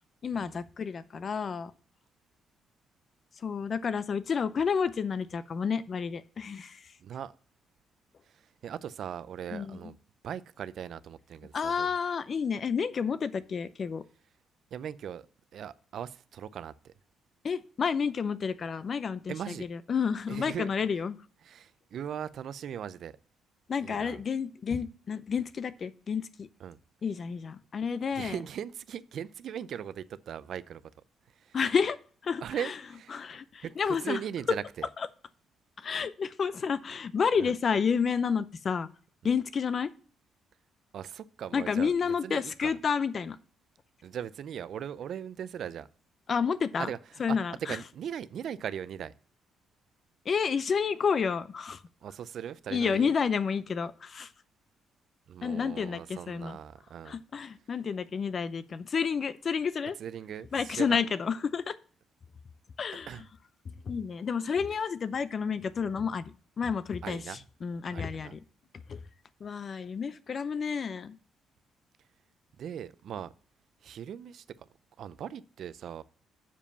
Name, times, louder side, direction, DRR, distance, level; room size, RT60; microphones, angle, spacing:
voice 1, 0.2-1.7 3.4-6.9 9.5-9.8 11.5-14.0 17.4-21.1 23.7-26.5 27.0-28.4 31.5-32.0 32.2-32.7 33.1-34.2 35.8-38.9 39.2-39.9 41.5-43.4 46.3-46.9 47.2-47.8 50.3-51.8 52.7-54.3 55.4-56.6 57.0-60.0 60.5-61.8 62.8-63.1 63.7-68.4 68.9-69.0 69.4-71.2, left 6 dB, 45° left, 0.6 m, -30 dB
voice 2, 7.0-7.3 8.3-10.0 10.2-11.9 14.7-15.3 15.5-16.9 19.3-19.7 20.3-20.7 21.4-23.1 23.8-24.2 26.6-26.8 28.1-30.8 31.4-31.6 32.4-33.2 33.6-34.9 37.4-37.5 40.9-42.7 44.0-45.9 46.8-47.4 47.7-49.1 52.0-53.1 55.3-57.2 60.0-61.0 63.1-63.3 67.0-67.4 67.9-68.4 72.6-73.3 73.8-74.7 75.0-76.0, right 9 dB, 65° right, 0.4 m, -39 dB
7.0 x 5.0 x 6.8 m
cardioid pair, 90°, 0 cm